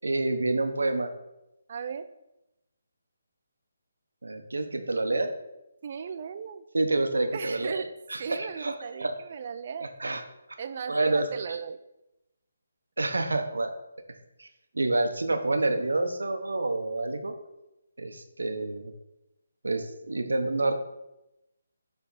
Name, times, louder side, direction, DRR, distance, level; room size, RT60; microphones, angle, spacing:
voice 1, 0.0-1.1 4.2-5.3 6.7-7.8 8.1-8.7 9.0-9.2 9.8-10.2 10.5-10.6 10.9-11.3 13.0-13.7 14.4-14.5 14.7-17.3 18.0-18.9 19.6-20.7, right 2 dB, 90° right, 7 dB, 0.8 m, -28 dB
voice 2, 1.7-2.1 5.8-6.6 7.3-7.9 8.2-9.9 10.6-11.8 14.8-14.9, right 6 dB, 45° right, 11 dB, 0.4 m, -36 dB
7.1 x 3.4 x 4.1 m, 0.93 s
hypercardioid pair, 160°, 0 cm